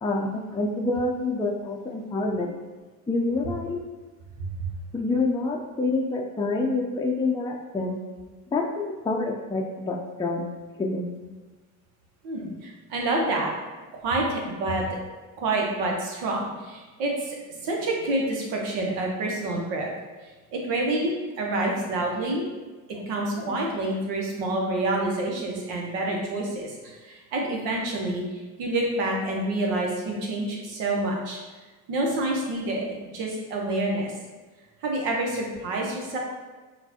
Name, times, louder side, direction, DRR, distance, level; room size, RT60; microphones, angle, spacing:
voice 1, 0.0-2.5 3.1-3.8 4.9-8.0 8.5-10.4 10.8-11.1 23.4-23.5, left 3 dB, 10° left, -1 dB, 0.5 m, -27 dB
voice 2, 4.4-4.7 12.2-13.5 14.0-14.9 15.4-19.9 20.2-22.4 23.0-31.4 31.9-34.1 34.8-36.2, right 2 dB, 80° right, -1 dB, 1.0 m, -28 dB
5.8 x 2.4 x 2.8 m, 1.3 s
hypercardioid pair, 55°, 42 cm